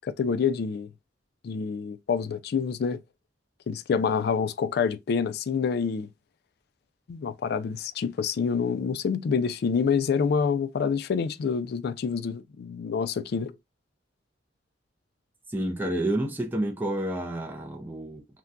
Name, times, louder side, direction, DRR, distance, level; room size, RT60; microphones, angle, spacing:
voice 1, 0.0-0.9 1.4-3.0 3.7-6.1 7.1-13.5, left 6 dB, 60° left, 0.3 m, -27 dB
voice 2, 15.5-18.4, right 1 dB, 10° right, 0.4 m, -29 dB
2.6 x 2.2 x 3.4 m
head